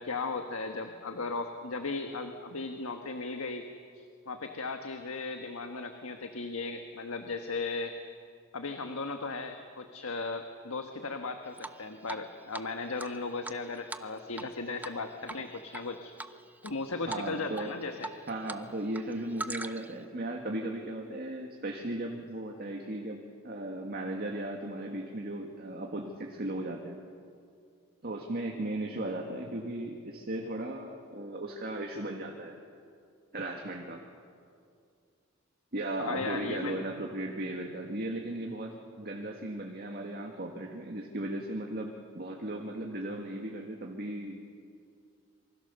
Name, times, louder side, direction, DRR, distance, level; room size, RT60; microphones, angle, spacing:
voice 1, 0.0-3.6 3.9-7.9 8.5-16.1 16.6-18.1 36.0-36.8, left 3 dB, 80° left, 5 dB, 1.4 m, -36 dB
Drip, 11.6-12.2 12.5-12.6 13.0-14.5 14.8-15.0 15.3-15.8 16.2-16.7 17.1-17.3 17.6-18.6 18.9-20.0, right 2 dB, 10° right, 0.6 m, -40 dB
voice 2, 17.1-17.7 18.3-27.0 28.0-32.6 33.3-34.0 35.7-44.4, right 1 dB, 45° right, 2 dB, 1.9 m, -36 dB
27.5 x 24.5 x 6.9 m, 2.4 s
head